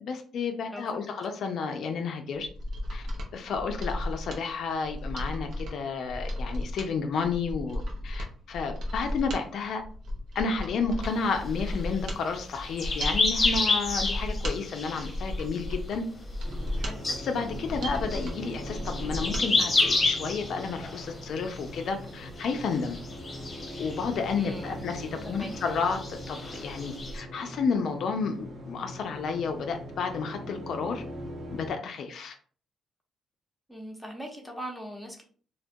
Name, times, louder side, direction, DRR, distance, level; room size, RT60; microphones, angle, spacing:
voice 1, 0.0-2.5 2.9-3.1 3.3-9.8 10.4-16.0 17.2-23.0 23.8-31.0 31.5-32.3, left 5 dB, 65° left, 5 dB, 0.3 m, -31 dB
voice 2, 0.7-1.1 16.8-17.0 24.3-24.8 25.2-25.5 33.7-35.2, equal, ahead, -1 dB, 0.7 m, -41 dB
Mechanisms, 2.4-19.5 19.8-19.9, left 1 dB, 75° right, 0.6 m, -35 dB
sound 1, 11.1-15.9 16.2-16.8 17.0-22.1 22.4-24.4 24.7-27.2, left 3 dB, 35° left, 0.7 m, -30 dB
sound 2, 16.4-31.7, equal, 40° right, 0.7 m, -41 dB
2.2 x 2.1 x 2.6 m, 0.43 s
cardioid pair, 90°, 0 cm